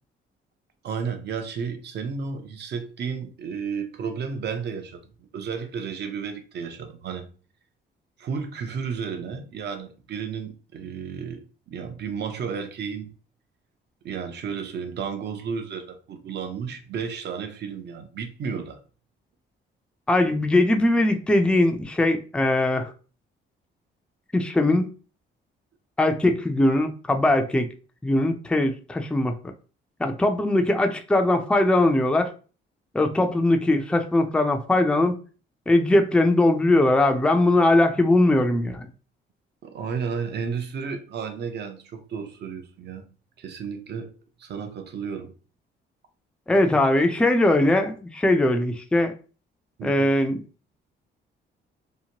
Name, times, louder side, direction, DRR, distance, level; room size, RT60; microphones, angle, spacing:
voice 1, 0.8-7.3 8.2-13.1 14.0-18.8 39.6-43.1 43.4-44.1 44.4-45.3 49.8-50.1, right 6 dB, 60° right, 0.6 m, -32 dB
voice 2, 20.1-22.9 24.3-24.9 26.0-27.7 28.0-29.3 30.0-32.3 32.9-35.2 35.7-38.9 46.5-49.1 49.8-50.4, left 1 dB, 5° left, 0.4 m, -20 dB
2.8 x 2.1 x 2.8 m
cardioid pair, 90°, 20 cm